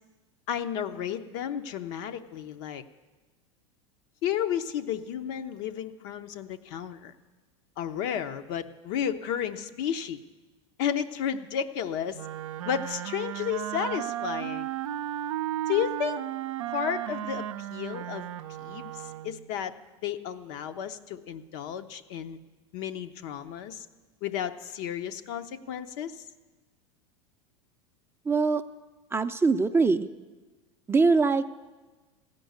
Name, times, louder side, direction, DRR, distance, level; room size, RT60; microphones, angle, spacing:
voice 1, 0.5-2.8 4.2-7.1 7.8-10.2 10.8-12.3 12.6-14.7 15.7-16.2 16.7-18.3 18.6-19.7 20.0-22.4 22.7-23.9 24.2-26.2, left 9 dB, 60° left, 8 dB, 0.7 m, -32 dB
Wind instrument woodwind instrument, 12.1-19.5, right 12 dB, 75° right, 0.5 m, -34 dB
voice 2, 28.3-28.6 29.1-30.1 30.9-31.6, right 4 dB, 15° right, 8 dB, 0.4 m, -23 dB
15.5 x 5.3 x 9.4 m, 1.3 s
hypercardioid pair, 95°, 16 cm